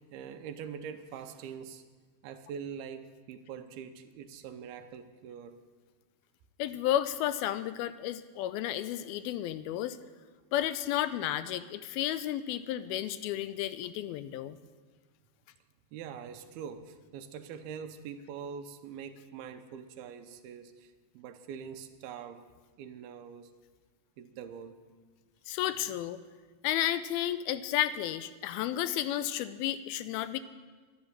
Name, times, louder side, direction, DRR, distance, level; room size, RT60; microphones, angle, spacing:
voice 1, 0.0-1.8 2.2-5.5 15.9-22.4 22.8-23.5 24.2-24.8, right 7 dB, 90° right, 8 dB, 2.6 m, -44 dB
voice 2, 6.6-10.0 10.5-14.6 25.5-26.2 26.6-30.4, left 12 dB, 85° left, 13 dB, 2.4 m, -32 dB
11.5 x 11.0 x 7.3 m, 1.4 s
omnidirectional pair, 4.4 m